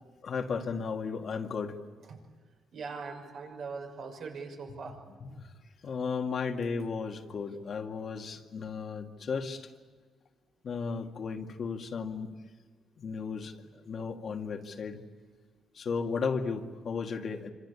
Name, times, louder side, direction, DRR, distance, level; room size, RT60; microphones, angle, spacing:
voice 1, 0.2-1.8 5.2-5.5 5.8-9.7 10.6-12.3 13.0-15.0 15.7-17.5, left 5 dB, 55° left, 3 dB, 2.2 m, -34 dB
voice 2, 2.7-5.0, right 4 dB, 65° right, 2 dB, 6.3 m, -41 dB
26.0 x 26.0 x 8.6 m, 1.4 s
cardioid pair, 90°, 0 cm